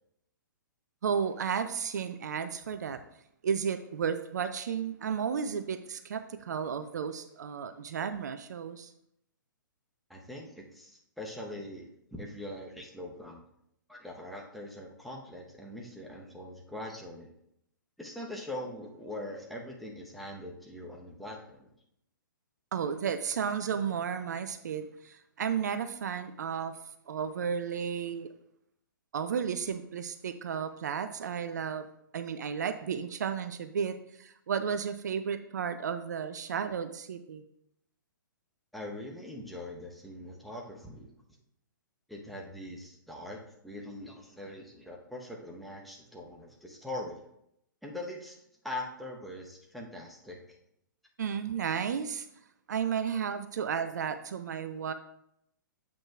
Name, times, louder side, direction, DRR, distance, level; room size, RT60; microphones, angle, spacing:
voice 1, 1.0-3.0 3.4-8.9 22.7-26.8 27.1-28.3 29.1-31.9 32.1-37.4 51.2-52.3 52.7-54.9, right 7 dB, 55° right, 10 dB, 0.5 m, -33 dB
voice 2, 10.1-13.4 13.9-17.3 18.0-21.7 38.7-41.1 42.1-43.4 43.6-47.2 47.8-48.4 48.6-50.4, left 1 dB, ahead, -2 dB, 1.0 m, -42 dB
8.8 x 7.4 x 2.4 m, 0.77 s
figure-of-eight pair, 120°, 11 cm